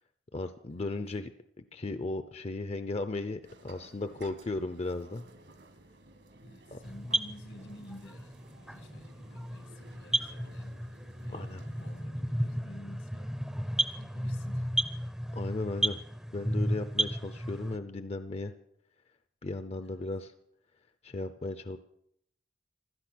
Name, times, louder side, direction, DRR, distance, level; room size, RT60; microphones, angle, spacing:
voice 1, 0.3-1.3 1.6-5.2 6.7-6.8 11.3-11.6 15.3-16.0 16.3-18.5 19.4-20.3 21.0-21.8, left 2 dB, 35° left, 0.6 m, -36 dB
sound 1, 3.4-12.0, right 2 dB, 75° right, 1.9 m, -56 dB
voice 2, 6.4-14.7 15.3-15.5 19.8-20.1, equal, 80° left, 2.3 m, -52 dB
sound 2, 6.8-17.8, right 1 dB, 5° right, 0.6 m, -34 dB
16.0 x 13.0 x 6.2 m
head